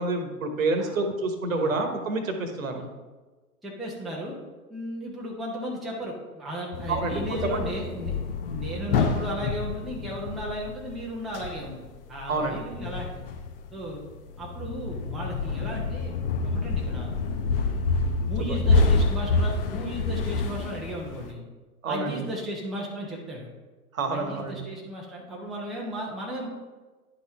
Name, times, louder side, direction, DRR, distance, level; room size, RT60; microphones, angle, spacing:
voice 1, 0.0-2.8 6.9-7.5 12.3-12.6 18.5-18.8 21.8-22.3 23.9-24.7, right 3 dB, 65° right, 5 dB, 1.2 m, -28 dB
voice 2, 3.6-4.4 4.7-8.1 8.5-11.7 12.1-13.2 13.7-14.0 14.4-17.1 18.3-21.4 21.9-23.5 24.1-26.5, equal, ahead, -4 dB, 0.6 m, -35 dB
sound 1, 6.7-21.3, left 3 dB, 40° left, 0.6 m, -28 dB
10.5 x 4.1 x 3.4 m, 1.3 s
figure-of-eight pair, 105°, 44 cm